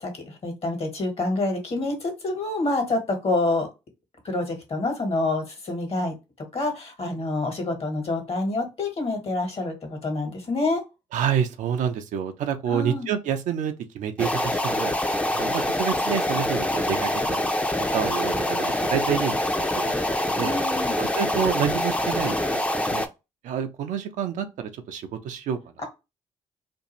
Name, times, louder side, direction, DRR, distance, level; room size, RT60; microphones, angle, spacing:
voice 1, 0.0-3.7 4.2-6.1 6.5-10.8 12.7-13.1 20.4-20.9, left 2 dB, 50° left, 1.3 m, -27 dB
voice 2, 11.1-14.9 15.3-20.0 20.3-20.5 21.0-23.1 23.4-25.6, right 8 dB, 70° right, 0.4 m, -28 dB
sound 1, 14.2-23.1, left 1 dB, 10° left, 0.5 m, -25 dB
2.6 x 2.3 x 2.9 m
hypercardioid pair, 45°, 13 cm